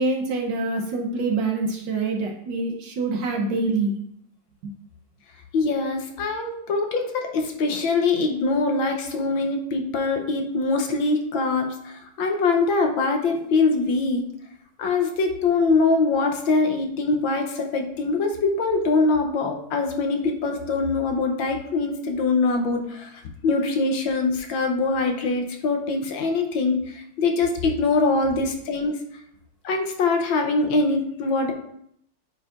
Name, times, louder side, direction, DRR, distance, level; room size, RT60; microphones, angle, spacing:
voice 1, 0.0-3.9, right 3 dB, 65° right, 1 dB, 1.4 m, -25 dB
voice 2, 5.5-14.2 14.8-29.0 29.6-31.5, left 3 dB, 70° left, 3 dB, 1.5 m, -23 dB
9.7 x 4.8 x 2.5 m, 0.71 s
omnidirectional pair, 2.4 m